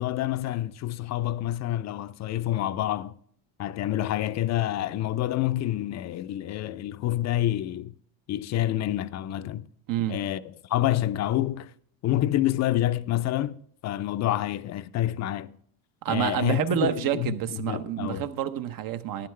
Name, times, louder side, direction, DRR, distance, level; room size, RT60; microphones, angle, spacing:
voice 1, 0.0-3.2 3.6-7.9 8.3-9.7 10.1-10.4 10.7-11.7 12.0-13.6 13.8-15.6 16.1-18.3, left 13 dB, 45° left, 0.5 m, -28 dB
voice 2, 9.9-10.2 16.0-19.3, right 11 dB, 60° right, 0.8 m, -28 dB
11.5 x 10.5 x 3.2 m
cardioid pair, 140°, 39 cm